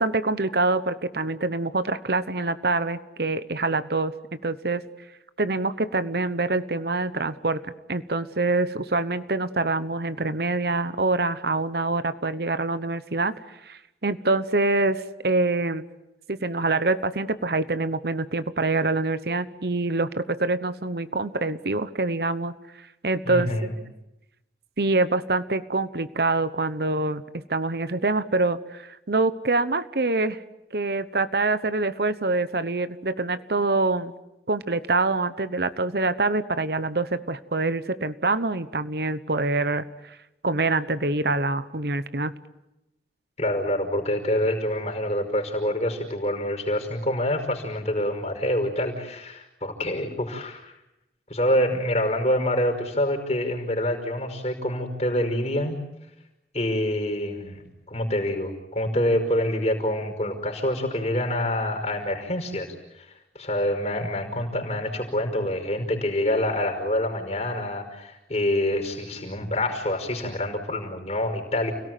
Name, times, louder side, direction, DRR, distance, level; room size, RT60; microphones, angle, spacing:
voice 1, 0.0-4.1 4.4-4.8 5.4-13.3 13.6-15.8 16.3-22.5 23.0-23.5 23.7-23.8 24.8-30.4 30.7-34.1 34.5-40.2 40.4-42.3, right 3 dB, 60° right, 13 dB, 1.0 m, -25 dB
voice 2, 23.3-23.7 43.4-50.7 51.3-55.8 56.5-62.8 63.4-71.7, left 1 dB, 35° left, 4 dB, 5.3 m, -26 dB
30.0 x 18.0 x 9.2 m, 0.92 s
head